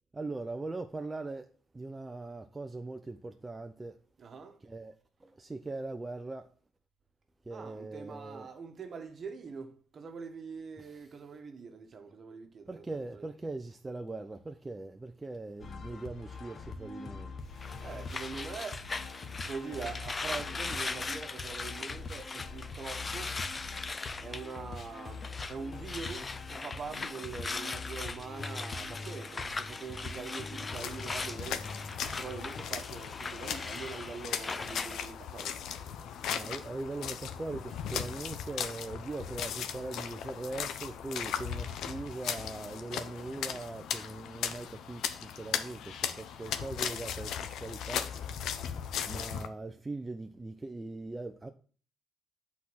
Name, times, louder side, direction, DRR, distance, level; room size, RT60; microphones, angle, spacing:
voice 1, 0.1-4.0 4.6-4.9 5.2-6.5 7.5-8.5 10.8-11.0 12.7-17.3 36.3-48.4 49.1-51.5, right 2 dB, 20° right, 0.6 m, -41 dB
voice 2, 4.2-4.6 7.5-13.3 17.8-18.9 19.4-23.4 24.2-31.7 32.2-35.6, right 5 dB, 45° right, 1.4 m, -43 dB
sound 1, 15.6-32.6, left 3 dB, 50° left, 1.3 m, -44 dB
sound 2, 17.6-25.6 25.8-35.1, left 3 dB, 30° left, 0.5 m, -40 dB
sound 3, 30.6-49.5, left 8 dB, 80° left, 0.7 m, -37 dB
8.2 x 4.3 x 6.2 m
cardioid pair, 90°, 0 cm